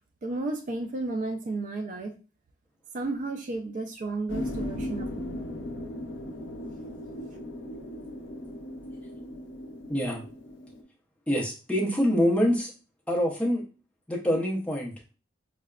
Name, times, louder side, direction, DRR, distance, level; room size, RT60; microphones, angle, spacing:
voice 1, 0.2-2.1 2.9-5.4, right 2 dB, 45° right, 5 dB, 0.3 m, -33 dB
sound 1, 4.3-10.8, left 1 dB, 85° left, 0.5 m, -37 dB
voice 2, 9.9-10.2 11.3-12.7 13.1-13.6 14.1-15.1, equal, 5° left, -3 dB, 0.6 m, -25 dB
4.7 x 2.1 x 2.2 m, 0.34 s
head